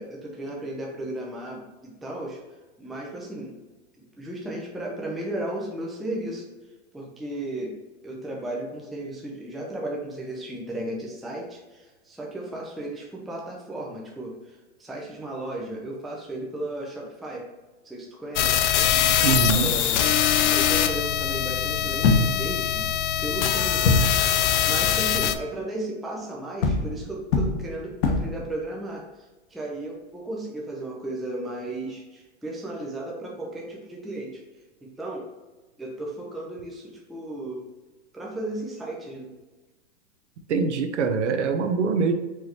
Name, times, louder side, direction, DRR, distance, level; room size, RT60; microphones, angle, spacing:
voice 1, 0.0-2.4 2.8-3.6 4.2-6.4 6.9-7.7 8.0-17.4 17.8-18.7 19.5-24.0 24.2-24.3 24.7-29.0 29.5-34.4 34.8-35.3 35.8-37.6 38.1-39.4, right 1 dB, ahead, -2 dB, 0.3 m, -35 dB
sound 1, 18.4-25.4, left 10 dB, 85° left, 0.5 m, -23 dB
voice 2, 19.2-19.7 40.5-42.1, right 5 dB, 80° right, 7 dB, 0.7 m, -23 dB
sound 2, 22.0-22.7 23.8-24.3 26.6-28.5, left 3 dB, 55° left, 0.9 m, -22 dB
4.7 x 3.2 x 2.9 m, 1.2 s
hypercardioid pair, 130°, 34 cm